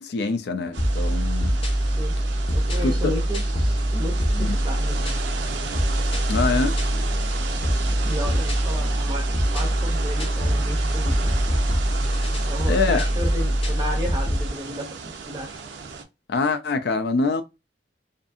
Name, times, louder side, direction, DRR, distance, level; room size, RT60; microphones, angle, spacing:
voice 1, 0.0-1.6 2.8-3.1 4.4-4.6 6.3-6.8 12.7-13.1 16.3-17.4, left 4 dB, 65° left, 0.4 m, -24 dB
sound 1, 0.7-16.0, right 5 dB, 70° right, 0.5 m, -34 dB
sound 2, 0.8-14.5, equal, 30° left, 0.7 m, -23 dB
voice 2, 2.5-5.2 7.8-9.2 9.5-11.3 12.4-15.6, equal, 20° right, 0.6 m, -34 dB
2.6 x 2.5 x 2.4 m
head